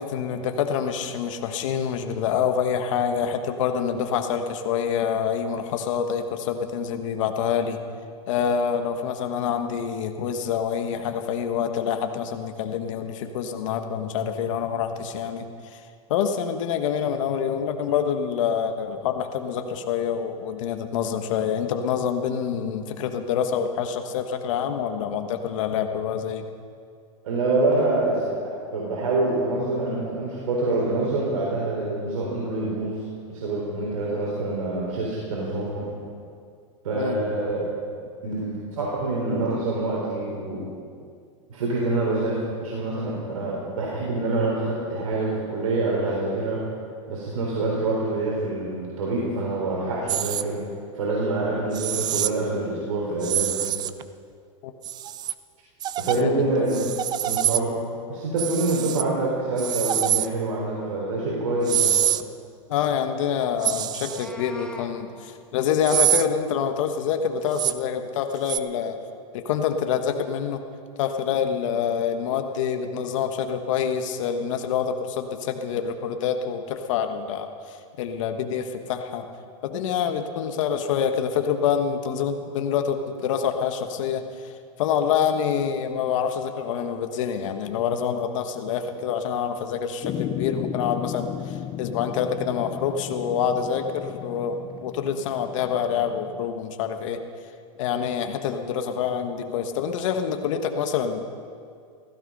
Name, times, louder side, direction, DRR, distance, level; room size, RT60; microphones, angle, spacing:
voice 1, 0.0-7.8 8.3-15.8 16.1-26.4 36.9-37.2 54.6-54.7 56.1-56.7 62.7-69.0 69.3-70.6 71.0-79.3 79.6-84.5 84.8-97.2 97.8-101.3, left 7 dB, 65° left, 6 dB, 1.5 m, -26 dB
voice 2, 27.2-33.1 33.3-35.8 36.8-37.7 38.2-40.7 41.5-46.6 47.1-50.6 50.9-53.6 56.0-56.9 57.2-57.7 58.1-62.0, right 2 dB, 80° right, -4 dB, 3.8 m, -26 dB
sound 1, 50.1-50.4 51.7-52.3 53.2-54.0 54.8-55.3 55.8-56.2 56.7-57.6 58.4-59.0 59.6-60.3 61.7-62.2 63.6-64.3 65.8-66.3 67.5-67.7 68.5-68.6, right 11 dB, 25° right, 0.5 m, -25 dB
Meow, 63.8-64.9, left 1 dB, 5° left, 1.2 m, -42 dB
sound 2, 90.0-96.5, left 10 dB, 30° left, 0.6 m, -35 dB
16.0 x 15.0 x 5.5 m, 2.2 s
hypercardioid pair, 130°, 18 cm